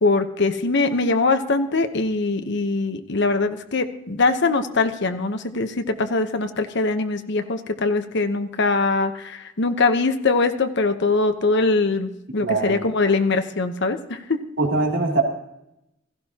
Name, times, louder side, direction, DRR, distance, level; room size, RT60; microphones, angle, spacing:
voice 1, 0.0-14.4, left 3 dB, 60° left, 7 dB, 1.0 m, -22 dB
voice 2, 12.4-12.7 14.6-15.2, right 3 dB, 70° right, 0 dB, 2.9 m, -21 dB
16.5 x 15.5 x 2.9 m, 0.83 s
head